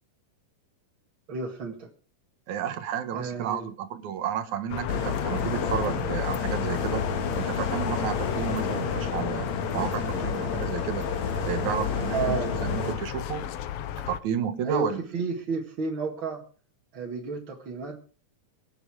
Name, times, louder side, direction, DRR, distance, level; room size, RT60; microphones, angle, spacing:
voice 1, 1.3-1.9 3.1-3.7 12.1-12.5 14.6-16.4 16.9-18.1, right 4 dB, 40° right, -2 dB, 2.4 m, -31 dB
voice 2, 2.5-7.0 7.4-11.1 11.5-13.5 14.1-15.0, right 9 dB, 70° right, 10 dB, 2.4 m, -32 dB
sound 1, 4.7-14.2, left 11 dB, 90° left, 1.3 m, -34 dB
sound 2, 4.9-12.9, left 5 dB, 60° left, 3.2 m, -30 dB
24.0 x 8.1 x 4.9 m, 0.40 s
omnidirectional pair, 3.8 m